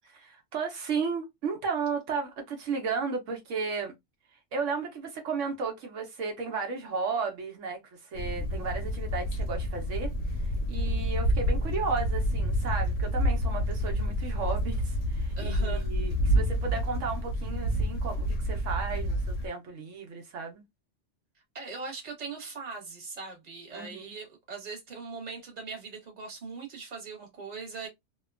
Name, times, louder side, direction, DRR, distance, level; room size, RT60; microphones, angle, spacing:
voice 1, 0.2-3.9 4.5-10.1 10.7-20.6 23.7-24.1, right 5 dB, 80° right, 1.0 m, -34 dB
sound 1, 8.1-19.5, equal, 80° left, 1.0 m, -28 dB
voice 2, 15.4-15.9 21.5-27.9, right 4 dB, 35° right, 1.1 m, -40 dB
2.8 x 2.2 x 2.3 m
omnidirectional pair, 1.3 m